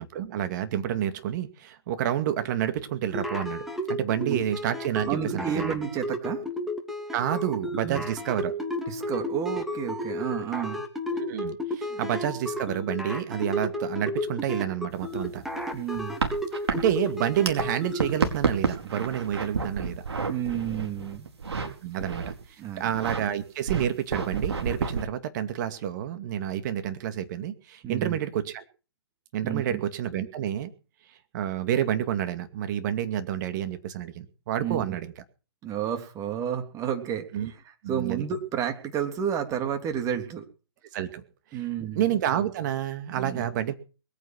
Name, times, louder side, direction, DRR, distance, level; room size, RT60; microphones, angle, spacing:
voice 1, 0.0-5.8 7.1-8.5 11.1-15.4 16.7-20.0 21.6-22.3 22.8-28.6 29.3-30.7 31.3-35.1 37.3-37.5 37.8-38.2 40.9-41.2 41.5-41.6 41.9-43.7, right 10 dB, 40° right, 9 dB, 2.4 m, -29 dB
sound 1, 3.1-18.1, left 1 dB, ahead, 2.8 m, -33 dB
voice 2, 4.2-4.5 5.1-6.4 7.8-8.0 8.9-10.8 11.9-12.0 15.7-16.2 20.3-21.3 22.6-22.9 27.8-28.2 29.4-29.8 34.6-34.8 35.6-40.4 41.5-42.0 43.1-43.5, right 8 dB, 25° right, 6 dB, 3.3 m, -31 dB
sound 2, 14.9-17.6 17.9-21.7 22.0-22.4 22.8-23.2 23.7-25.0, right 5 dB, 70° right, 4.5 m, -30 dB
21.5 x 9.7 x 6.2 m, 0.35 s
hypercardioid pair, 130°, 14 cm